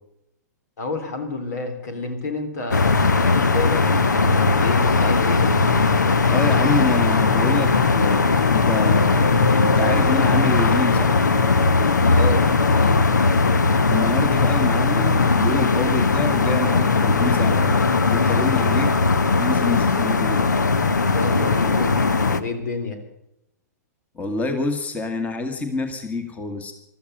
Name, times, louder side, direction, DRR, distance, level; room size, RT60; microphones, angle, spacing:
voice 1, 0.8-5.4 12.1-13.0 21.1-22.0 22.3-23.0, left 3 dB, 70° left, 8 dB, 3.5 m, -29 dB
sound 1, 2.7-22.4, left 4 dB, 90° left, 1.0 m, -18 dB
voice 2, 6.3-11.2 13.9-18.9 19.4-20.5 24.2-26.7, left 3 dB, 15° left, 8 dB, 1.8 m, -27 dB
15.0 x 13.0 x 6.7 m, 0.81 s
hypercardioid pair, 115°, 9 cm